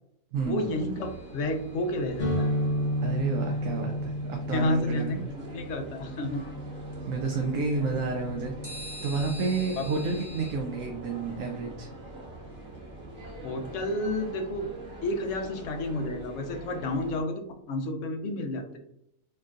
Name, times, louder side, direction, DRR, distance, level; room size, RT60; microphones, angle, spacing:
voice 1, 0.4-2.5 4.5-6.4 9.8-9.9 13.4-14.7 15.0-18.8, left 1 dB, 70° left, 5 dB, 1.0 m, -31 dB
sound 1, 0.6-17.2, right 2 dB, 50° right, 1.6 m, -44 dB
sound 2, 1.0-2.2 8.6-10.5, equal, 25° right, 1.3 m, -44 dB
sound 3, 2.2-9.8, equal, 40° left, 0.8 m, -33 dB
voice 2, 3.0-5.3 7.1-8.5 9.0-11.9, right 4 dB, 75° right, 2 dB, 1.0 m, -30 dB
4.3 x 3.0 x 2.4 m, 0.76 s
omnidirectional pair, 1.4 m